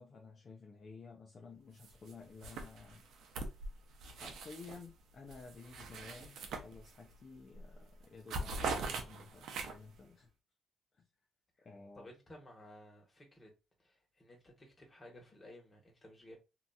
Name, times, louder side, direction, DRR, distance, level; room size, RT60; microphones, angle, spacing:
voice 1, 0.0-3.0 4.1-10.3 10.9-11.0 11.6-12.1, left 4 dB, 45° left, 0.6 m, -53 dB
sound 1, 1.8-2.1 2.4-4.9 5.3-7.2 7.5-7.8 8.0-10.0, right 3 dB, 75° right, 0.6 m, -42 dB
voice 2, 11.9-13.5 13.8-16.4, left 1 dB, 20° left, 1.4 m, -56 dB
2.8 x 2.7 x 2.3 m
cardioid pair, 90°, 0 cm